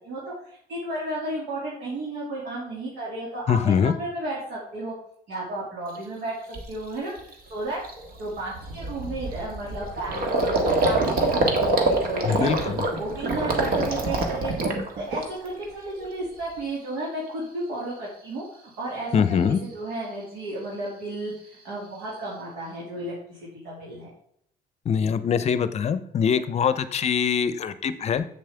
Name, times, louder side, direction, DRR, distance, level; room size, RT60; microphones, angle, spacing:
voice 1, 0.0-4.9 5.3-6.4 6.7-7.8 8.2-12.5 12.8-14.5 15.0-18.4 18.8-23.4 23.6-24.1, right 2 dB, 80° right, -5 dB, 2.3 m, -33 dB
voice 2, 3.5-3.9 12.2-12.8 19.1-19.6 24.8-28.3, left 7 dB, 40° left, 13 dB, 0.6 m, -23 dB
Gurgling, 5.9-6.0 6.5-6.8 7.2-7.3 7.6-15.6 16.0-16.6, right 2 dB, 60° right, 1.6 m, -26 dB
7.5 x 7.3 x 3.4 m, 0.68 s
cardioid pair, 110°, 17 cm